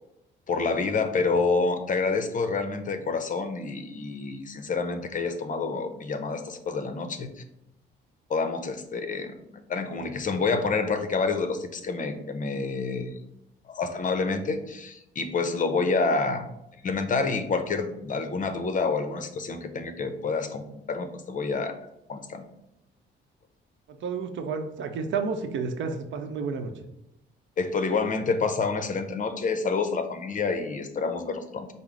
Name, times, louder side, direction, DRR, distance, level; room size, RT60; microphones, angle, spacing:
voice 1, 0.5-7.3 8.3-13.1 13.7-16.5 16.8-21.7 22.1-22.4 27.6-31.7, left 4 dB, 40° left, 8 dB, 0.6 m, -28 dB
voice 2, 24.0-26.7, right 5 dB, 70° right, 6 dB, 0.7 m, -30 dB
5.5 x 2.0 x 4.8 m, 0.84 s
cardioid pair, 90°, 20 cm